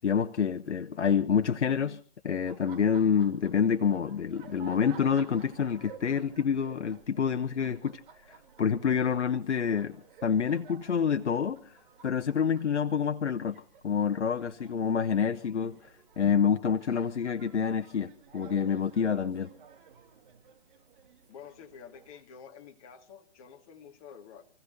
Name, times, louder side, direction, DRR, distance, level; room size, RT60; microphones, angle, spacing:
voice 1, 0.0-7.9 8.3-10.0 10.2-11.8 12.0-15.8 16.2-19.5, left 7 dB, 90° left, 10 dB, 1.0 m, -27 dB
Laughter, 2.4-22.2, right 7 dB, 45° right, 3.0 m, -54 dB
voice 2, 21.3-24.4, left 7 dB, 30° left, 3 dB, 2.0 m, -50 dB
29.0 x 16.0 x 2.7 m, 0.42 s
hypercardioid pair, 150°, 34 cm